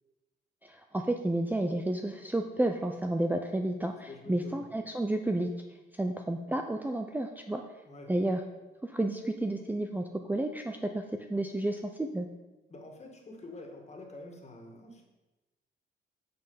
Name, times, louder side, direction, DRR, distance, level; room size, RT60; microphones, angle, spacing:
voice 1, 0.6-5.5 6.0-7.6 8.1-8.4 8.8-12.3, right 1 dB, 10° right, 5 dB, 0.6 m, -31 dB
voice 2, 4.1-4.6 7.9-8.2 12.7-15.0, left 2 dB, 35° left, 2 dB, 2.2 m, -47 dB
9.2 x 5.6 x 5.6 m, 1.1 s
cardioid pair, 90°, 20 cm